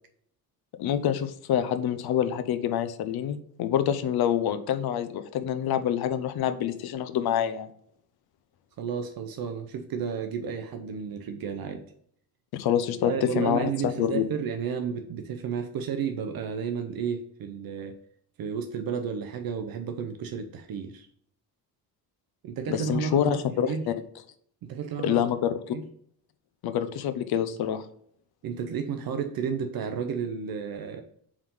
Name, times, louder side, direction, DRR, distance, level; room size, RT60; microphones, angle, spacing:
voice 1, 0.8-7.7 12.5-14.3 22.7-23.9 25.0-25.8 26.6-27.8, left 10 dB, 70° left, 10 dB, 0.6 m, -26 dB
voice 2, 8.8-11.8 13.0-18.0 18.4-21.1 22.4-23.9 24.6-25.3 25.7-25.8 28.4-31.0, right 7 dB, 65° right, 6 dB, 0.7 m, -32 dB
4.8 x 3.7 x 5.4 m, 0.64 s
cardioid pair, 175°, 38 cm